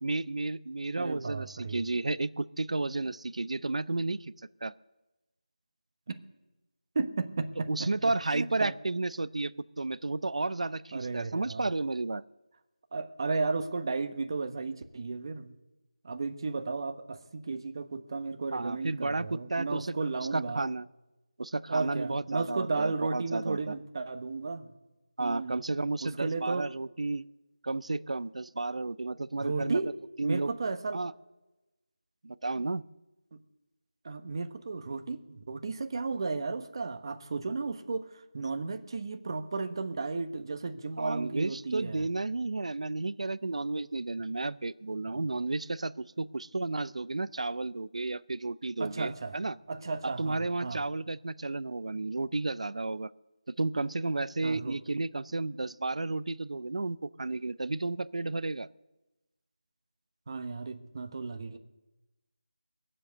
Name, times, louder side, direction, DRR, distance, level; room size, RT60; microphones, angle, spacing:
voice 1, 0.0-4.3 4.6-4.7 7.7-12.2 18.5-20.9 21.4-23.7 25.2-27.3 27.6-29.8 30.2-30.5 30.9-31.1 32.2-32.8 41.0-49.5 50.2-53.1 53.6-58.7, right 2 dB, 65° right, 18 dB, 0.6 m, -32 dB
voice 2, 1.0-1.9 6.1-6.2 6.9-8.7 10.9-11.7 12.9-15.5 16.0-20.7 21.7-24.7 25.2-25.6 26.0-26.7 29.4-29.9 30.2-31.0 34.0-42.1 45.1-45.2 48.8-49.4 49.7-50.8 54.4-54.8 60.3-61.6, right 3 dB, 40° right, 8 dB, 1.2 m, -34 dB
20.0 x 7.8 x 8.0 m, 1.0 s
figure-of-eight pair, 165°, 4 cm